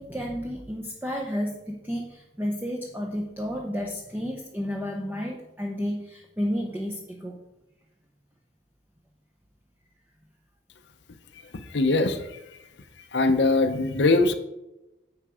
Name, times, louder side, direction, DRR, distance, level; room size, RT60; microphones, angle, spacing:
voice 1, 0.0-7.4, equal, 10° right, 1 dB, 0.6 m, -31 dB
voice 2, 11.7-12.4 13.1-14.3, left 3 dB, 75° left, 7 dB, 0.7 m, -21 dB
9.0 x 4.5 x 4.9 m, 0.94 s
head